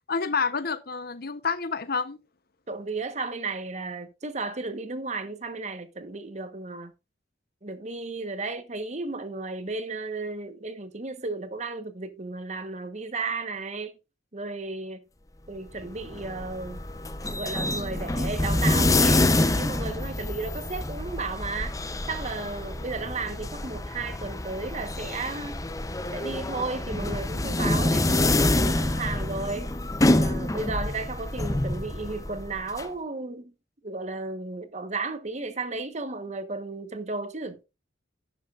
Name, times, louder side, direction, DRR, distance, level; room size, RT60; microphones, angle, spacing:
voice 1, 0.1-2.2, left 5 dB, 55° left, 0.9 m, -28 dB
voice 2, 2.7-6.9 7.6-14.0 14.3-15.0 15.5-16.8 17.3-19.3 19.5-21.8 22.1-25.6 26.1-29.7 30.1-33.5 33.8-37.6, right 3 dB, 40° right, 1.3 m, -34 dB
sound 1, 15.8-32.8, left 2 dB, 20° left, 0.7 m, -27 dB
11.5 x 9.9 x 2.5 m
head